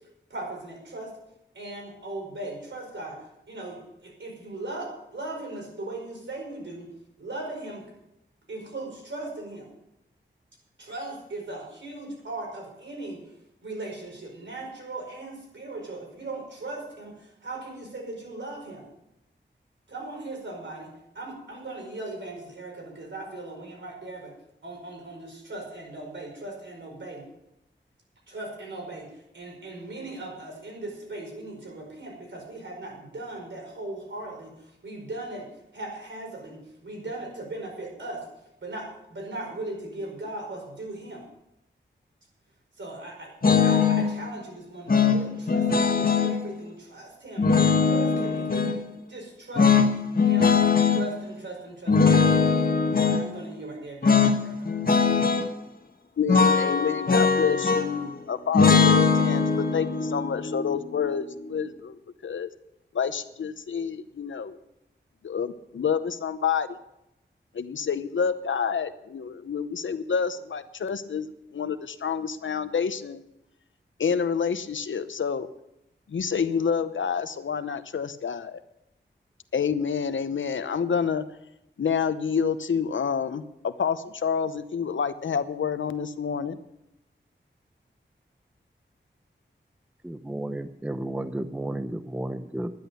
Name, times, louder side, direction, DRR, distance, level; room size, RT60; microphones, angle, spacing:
voice 1, 0.3-1.1 1.5-6.9 7.2-7.8 8.5-9.7 10.8-13.2 13.6-18.9 19.9-20.9 21.1-24.3 24.6-27.3 28.3-38.2 38.6-41.2 42.8-47.5 47.8-49.7 50.2-50.6 50.9-52.8 53.1-54.7, right 2 dB, 70° right, 0 dB, 5.0 m, -38 dB
sound 1, 43.4-44.1 44.9-46.4 47.4-48.8 49.6-51.0 51.9-53.2 54.0-54.4 54.7-55.5 56.3-58.0 58.5-61.6, left 5 dB, 50° left, 1.3 m, -21 dB
voice 2, 56.2-62.5 62.9-64.6 65.2-66.8 67.5-73.2 74.0-75.5 76.1-78.6 79.5-81.2 81.8-86.6, left 6 dB, 80° left, 12 dB, 0.8 m, -28 dB
voice 3, 90.0-92.7, right 1 dB, 5° right, 11 dB, 0.6 m, -32 dB
11.0 x 10.5 x 6.9 m, 0.85 s
wide cardioid pair, 75°, 20 cm